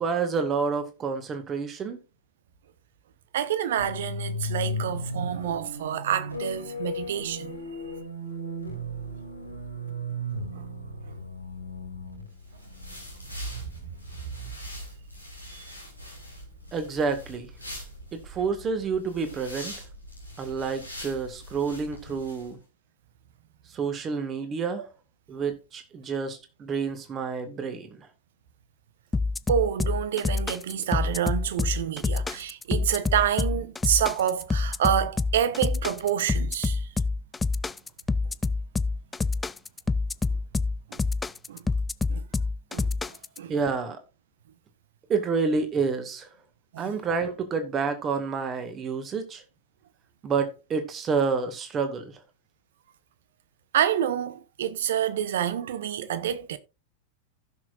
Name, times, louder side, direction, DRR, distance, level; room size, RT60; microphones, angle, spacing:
voice 1, 0.0-2.0 16.7-17.5 18.1-19.7 20.4-22.6 23.7-24.9 25.3-28.1 43.5-44.0 45.1-46.3 46.8-49.4 50.2-52.2, right 5 dB, 25° right, 1.9 m, -29 dB
voice 2, 3.3-7.6 10.5-10.7 11.1-11.2 13.5-13.7 14.4-14.5 15.5-15.7 24.8-24.9 29.5-36.9 40.9-41.0 41.5-41.6 42.1-42.3 42.7-43.5 46.7-46.9 53.7-56.6, right 9 dB, 60° right, 1.0 m, -28 dB
sound 1, 3.8-13.7, equal, 90° left, 3.0 m, -35 dB
sound 2, 12.3-22.5, left 1 dB, 90° right, 3.5 m, -44 dB
sound 3, 29.1-43.4, left 3 dB, 10° left, 0.4 m, -27 dB
16.0 x 6.5 x 2.6 m
figure-of-eight pair, 90°, 0 cm